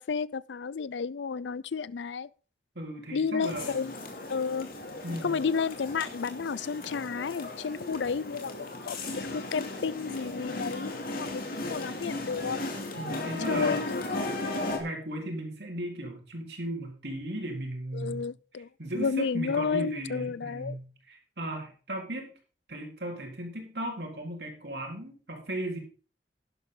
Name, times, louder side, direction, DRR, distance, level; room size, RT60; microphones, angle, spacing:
voice 1, 0.0-2.3 3.1-3.9 4.3-4.7 5.2-12.6 13.5-14.0 14.4-14.6 17.9-18.7 18.9-20.8, left 5 dB, 90° left, 0.5 m, -32 dB
voice 2, 2.8-3.8 5.0-5.5 13.0-13.8 14.8-18.3 18.8-22.3 22.7-25.8, right 1 dB, 65° right, 3.9 m, -36 dB
sound 1, 3.4-14.8, left 2 dB, 55° left, 2.6 m, -36 dB
11.5 x 11.0 x 3.8 m
head